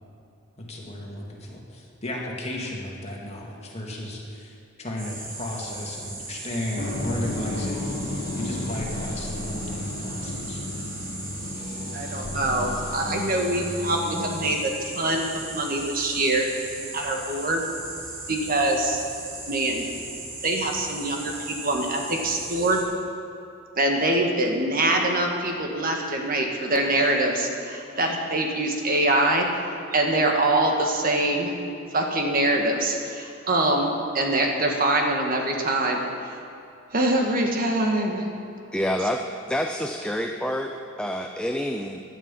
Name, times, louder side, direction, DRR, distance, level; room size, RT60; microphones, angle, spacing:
voice 1, 0.6-10.6, left 1 dB, 30° left, -2 dB, 2.3 m, -34 dB
sound 1, 5.0-22.8, right 2 dB, 60° right, 3.7 m, -38 dB
sound 2, 6.8-14.6, left 1 dB, 50° left, 1.6 m, -33 dB
voice 2, 11.9-16.4 16.9-17.6 18.3-19.0 19.5-19.8 20.4-22.8 23.8-29.5 29.9-31.5 31.9-36.0 36.9-38.2, right 1 dB, 45° right, 2 dB, 1.7 m, -24 dB
voice 3, 38.7-39.2 39.5-40.7 41.0-42.0, equal, 5° left, 3 dB, 0.5 m, -27 dB
16.0 x 11.0 x 5.5 m, 2.7 s
head